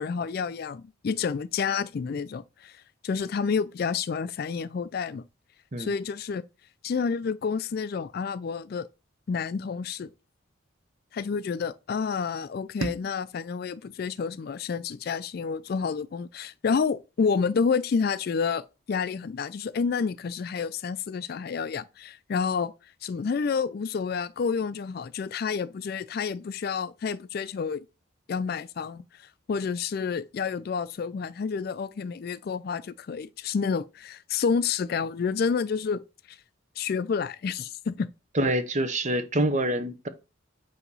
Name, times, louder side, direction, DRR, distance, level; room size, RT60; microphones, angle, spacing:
voice 1, 0.0-5.2 5.8-6.4 6.8-8.9 9.3-10.1 11.1-22.7 23.0-27.8 28.3-29.0 29.5-36.4 36.8-38.1, left 5 dB, 50° left, 0.3 m, -29 dB
sound 1, 12.8-15.7, right 3 dB, 75° right, 0.7 m, -41 dB
voice 2, 38.3-40.1, right 1 dB, 35° right, 0.8 m, -26 dB
8.4 x 2.9 x 5.4 m
head